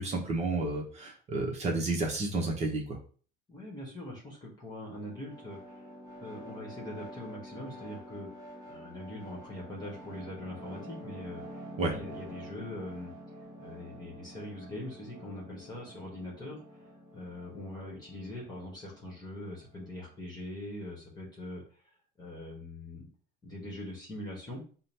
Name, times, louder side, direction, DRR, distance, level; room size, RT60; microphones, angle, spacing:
voice 1, 0.0-3.0 11.8-11.9, right 2 dB, 35° right, 1 dB, 0.9 m, -31 dB
voice 2, 3.5-5.9 6.2-8.3 8.6-13.1 13.6-23.1 23.4-24.6, left 1 dB, 20° left, -3 dB, 1.1 m, -42 dB
sound 1, 4.7-20.2, equal, 15° right, 1.3 m, -48 dB
3.8 x 2.1 x 4.3 m, 0.41 s
cardioid pair, 130°, 21 cm